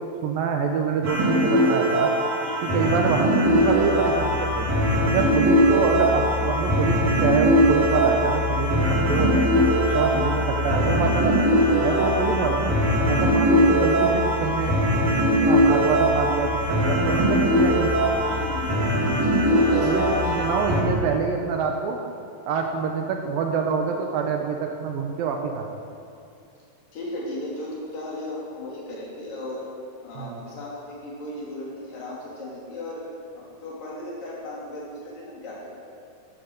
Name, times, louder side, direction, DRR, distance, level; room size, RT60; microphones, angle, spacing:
voice 1, 0.0-2.1 2.6-4.7 5.0-9.5 9.9-11.4 11.8-12.8 13.1-14.9 15.4-18.0 19.8-22.0 22.5-25.6 30.2-30.4, right 6 dB, 75° right, 3 dB, 2.4 m, -26 dB
sound 1, 1.0-20.8, equal, 40° right, 5.0 m, -21 dB
voice 2, 2.4-2.8 5.2-5.4 9.9-10.3 11.8-12.1 13.1-13.4 18.3-18.7 19.4-20.5 26.9-29.7 30.0-33.0 33.3-35.8, left 2 dB, 60° left, -5 dB, 4.6 m, -36 dB
sound 2, 3.4-21.2, left 6 dB, 75° left, 1.8 m, -31 dB
13.0 x 11.5 x 6.6 m, 2.5 s
omnidirectional pair, 4.7 m